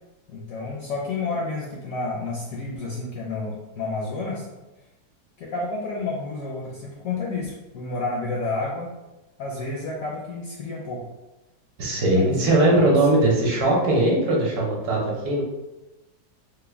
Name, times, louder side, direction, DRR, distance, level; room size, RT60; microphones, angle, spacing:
voice 1, 0.3-4.4 5.4-8.9 9.4-11.1 12.1-12.9, left 3 dB, 70° left, -3 dB, 0.8 m, -30 dB
voice 2, 11.8-15.4, right 1 dB, 65° right, -2 dB, 1.1 m, -20 dB
3.4 x 2.1 x 3.3 m, 1.0 s
omnidirectional pair, 1.9 m